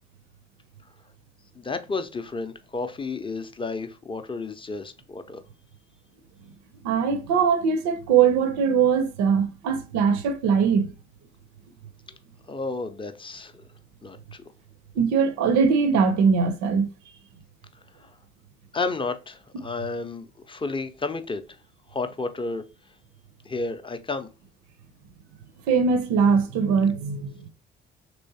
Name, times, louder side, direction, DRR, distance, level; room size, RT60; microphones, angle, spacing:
voice 1, 1.6-5.4 12.5-13.6 14.0-14.4 18.7-21.4 21.9-22.6 23.5-24.3, left 3 dB, 15° left, 0.5 m, -32 dB
voice 2, 6.8-10.9 15.0-16.9 25.7-27.3, right 6 dB, 60° right, 0.5 m, -21 dB
3.1 x 3.0 x 2.7 m
hypercardioid pair, 45°, 31 cm